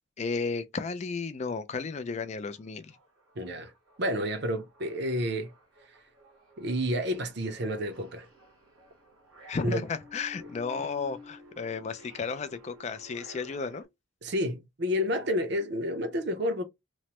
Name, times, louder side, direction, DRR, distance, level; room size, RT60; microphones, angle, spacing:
voice 1, 0.2-3.0 9.5-13.8, left 4 dB, 30° left, 0.3 m, -33 dB
sound 1, 1.9-2.0 2.3-13.8, left 1 dB, 85° right, 1.2 m, -53 dB
voice 2, 3.4-3.7 4.0-5.5 6.6-8.3 9.6-9.8 14.2-16.6, equal, 50° right, 0.6 m, -30 dB
3.0 x 2.1 x 2.9 m
head